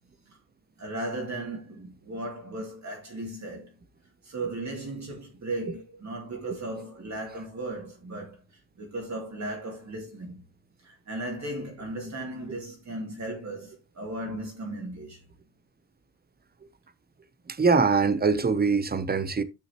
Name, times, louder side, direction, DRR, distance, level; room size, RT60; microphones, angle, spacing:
voice 1, 0.8-3.7 4.2-8.4 8.8-10.4 10.8-15.2, right 2 dB, 40° right, 2.6 m, -36 dB
voice 2, 17.5-19.4, right 4 dB, 25° right, 0.7 m, -23 dB
10.0 x 6.3 x 2.9 m
cardioid pair, 120°, 42 cm